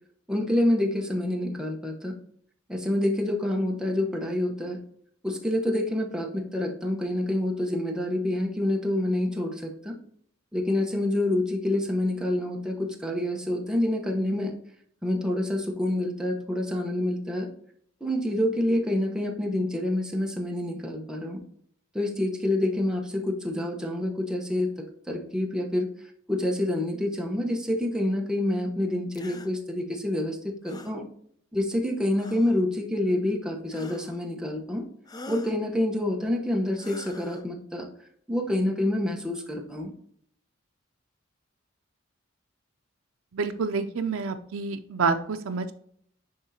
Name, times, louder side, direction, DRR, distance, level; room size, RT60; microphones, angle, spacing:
voice 1, 0.3-2.2 2.7-4.8 5.2-10.0 10.5-14.5 15.0-17.5 18.0-21.4 21.9-25.9 26.3-31.0 31.5-34.8 35.3-37.9 38.3-39.9, left 1 dB, 5° right, 1 dB, 1.0 m, -27 dB
sound 1, 29.1-29.5 30.6-31.0 32.2-32.6 33.7-34.3 35.1-35.6 36.8-37.4, left 3 dB, 20° left, 0.4 m, -44 dB
voice 2, 43.3-45.7, right 4 dB, 85° right, 6 dB, 0.5 m, -28 dB
10.5 x 3.6 x 2.8 m, 0.65 s
head